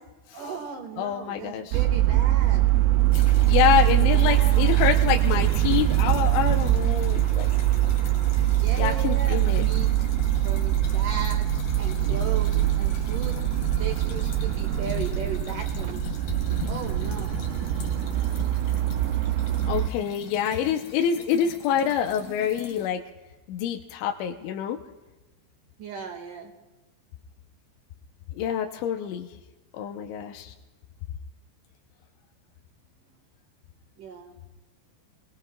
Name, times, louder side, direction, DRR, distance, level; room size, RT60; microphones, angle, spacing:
voice 1, 0.3-2.7 3.5-4.9 8.6-9.9 10.4-11.5 11.8-13.4 13.8-16.1 16.7-17.3 25.8-26.5 34.0-34.4, right 6 dB, 55° right, 2 dB, 3.0 m, -36 dB
voice 2, 1.0-1.8 3.5-7.5 8.8-9.6 19.7-23.0 23.5-24.8 28.4-29.3 29.7-30.5, left 9 dB, 85° left, 2 dB, 3.2 m, -26 dB
sound 1, 1.7-19.9, right 14 dB, 80° right, 2.6 m, -23 dB
sound 2, 3.1-22.9, left 9 dB, 60° left, 2.6 m, -40 dB
28.0 x 20.5 x 2.4 m, 1.2 s
omnidirectional pair, 5.4 m